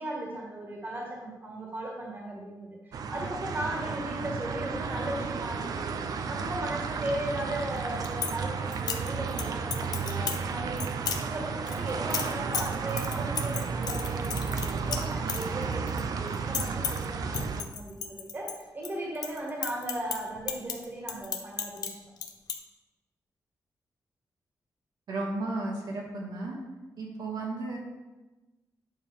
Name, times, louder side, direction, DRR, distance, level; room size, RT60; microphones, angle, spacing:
voice 1, 0.0-6.0 6.3-10.9 11.2-22.0, right 1 dB, 30° right, -2 dB, 1.8 m, -37 dB
sound 1, 2.9-17.6, right 5 dB, 65° right, 0.6 m, -33 dB
sound 2, 7.8-8.3 8.7-9.4 9.7-10.4 10.8-11.2 11.7-16.0 16.3-17.0 17.3-18.9 19.1-21.9 22.2-22.5, left 7 dB, 70° left, 0.9 m, -33 dB
voice 2, 25.1-26.6 27.0-27.8, right 2 dB, 85° right, -3 dB, 2.3 m, -34 dB
9.9 x 6.8 x 3.6 m, 1.1 s
wide cardioid pair, 170°, 7 cm